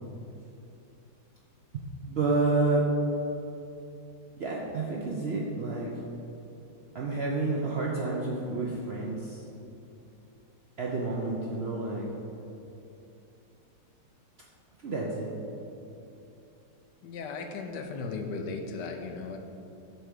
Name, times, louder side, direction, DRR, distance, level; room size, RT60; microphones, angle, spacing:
voice 1, 1.7-2.9 4.4-5.9 6.9-9.4 10.8-12.1 14.8-15.3, right 3 dB, 60° right, -3 dB, 0.6 m, -29 dB
voice 2, 17.0-19.4, left 4 dB, 85° left, 4 dB, 1.3 m, -36 dB
7.5 x 3.4 x 6.4 m, 2.8 s
omnidirectional pair, 1.8 m